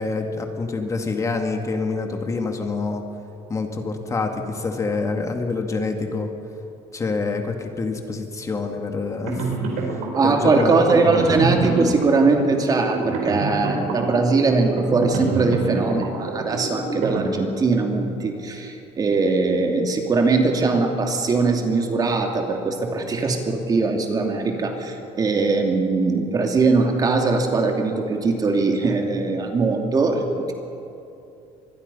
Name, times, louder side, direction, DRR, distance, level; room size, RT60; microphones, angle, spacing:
voice 1, 0.0-3.0 3.5-6.3 6.9-9.5 10.2-10.8, left 3 dB, 25° left, 4 dB, 2.2 m, -26 dB
sound 1, 9.2-17.8, right 3 dB, 80° right, 4.6 m, -27 dB
voice 2, 10.1-30.5, right 3 dB, 30° right, 3 dB, 2.8 m, -21 dB
25.0 x 21.0 x 5.6 m, 2.7 s
cardioid pair, 115°, 12 cm